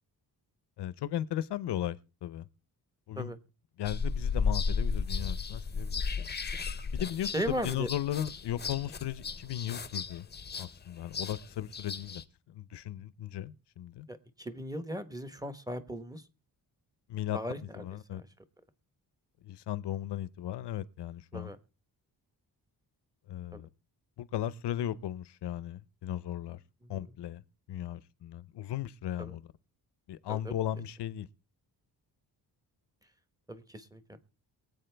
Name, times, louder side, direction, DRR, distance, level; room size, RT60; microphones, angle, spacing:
voice 1, 0.8-2.5 3.1-3.3 3.8-6.0 6.9-10.3 10.6-12.2 12.5-14.1 17.1-17.4 17.7-18.2 19.4-21.5 23.3-23.7 24.2-26.6 26.9-27.4 27.7-29.5 30.1-31.3, left 12 dB, 85° left, 0.8 m, -36 dB
sound 1, 3.8-12.2, left 5 dB, 25° left, 0.7 m, -34 dB
voice 2, 7.2-7.9 14.1-16.2 17.3-17.8 18.1-18.2 21.3-21.6 23.5-23.6 26.8-27.0 29.2-29.3 30.3-30.5 33.5-34.2, equal, 10° right, 1.1 m, -37 dB
23.5 x 8.4 x 3.4 m
wide cardioid pair, 140°, 40 cm